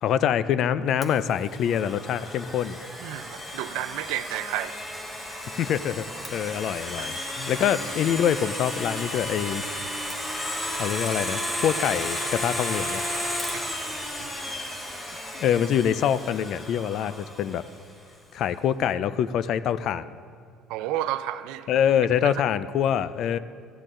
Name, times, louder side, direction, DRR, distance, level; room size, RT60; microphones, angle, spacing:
voice 1, 0.0-2.8 5.5-6.1 6.3-9.6 10.8-13.0 15.3-17.6 18.3-20.2 21.7-23.4, left 9 dB, 50° left, 15 dB, 0.3 m, -25 dB
Domestic sounds home sounds, 1.0-17.8, left 1 dB, 15° left, 1.1 m, -33 dB
voice 2, 3.0-4.8 7.0-7.1 7.6-7.7 14.5-14.6 20.7-21.7 22.2-22.3, right 13 dB, 85° right, 13 dB, 0.4 m, -31 dB
15.0 x 9.9 x 3.7 m, 2.2 s
cardioid pair, 160°, 0 cm